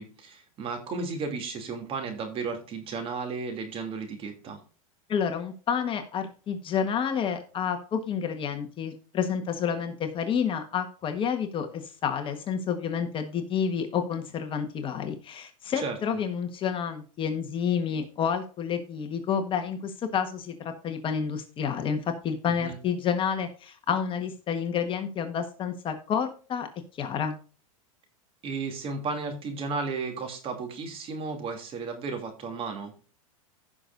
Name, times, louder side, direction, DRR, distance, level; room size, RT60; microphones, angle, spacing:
voice 1, 0.0-4.6 15.7-15.9 22.6-22.8 28.4-32.9, right 4 dB, 30° right, 5 dB, 2.7 m, -34 dB
voice 2, 5.1-20.5 20.8-26.7 27.0-27.4, left 7 dB, 30° left, 7 dB, 1.4 m, -29 dB
16.0 x 6.1 x 2.6 m, 0.37 s
supercardioid pair, 130°, 18 cm